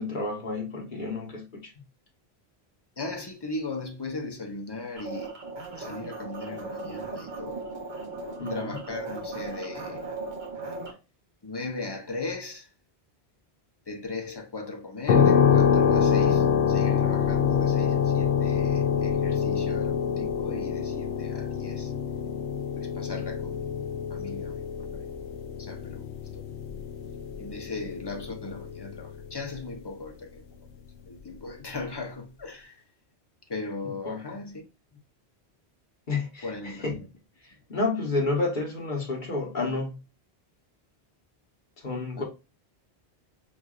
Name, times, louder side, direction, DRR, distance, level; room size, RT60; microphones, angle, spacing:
voice 1, 0.0-1.6 8.4-8.8 34.0-34.2 36.1-36.9 37.7-39.9 41.8-42.2, left 3 dB, 50° left, 1.2 m, -30 dB
voice 2, 3.0-5.4 5.8-7.6 8.5-10.1 11.4-12.7 13.9-21.9 22.7-23.7 24.1-24.6 24.9-25.0 25.6-26.1 26.3-26.4 27.4-30.4 31.0-32.8 33.5-34.6 36.4-37.1 42.1-42.2, left 3 dB, 25° left, 0.8 m, -38 dB
sound 1, 5.0-10.9, right 3 dB, 50° right, 1.1 m, -37 dB
sound 2, 15.1-29.7, left 7 dB, 85° left, 0.9 m, -26 dB
6.2 x 2.6 x 2.4 m
omnidirectional pair, 1.1 m